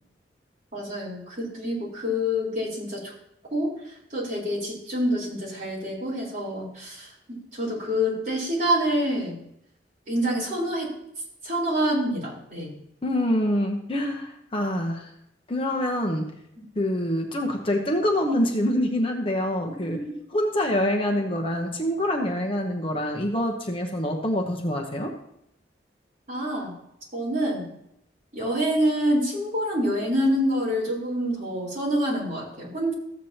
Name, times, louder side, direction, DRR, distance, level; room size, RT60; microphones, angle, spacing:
voice 1, 0.7-3.1 3.5-3.7 4.1-9.4 10.1-10.9 11.4-12.7 16.6-16.7 19.9-20.0 26.3-26.7 27.1-27.7 28.3-32.9, equal, 45° right, -6 dB, 4.0 m, -26 dB
voice 2, 13.0-15.1 15.5-16.3 16.8-20.0 20.3-25.1, left 1 dB, 30° left, 2 dB, 1.0 m, -25 dB
14.5 x 8.3 x 2.9 m, 0.77 s
head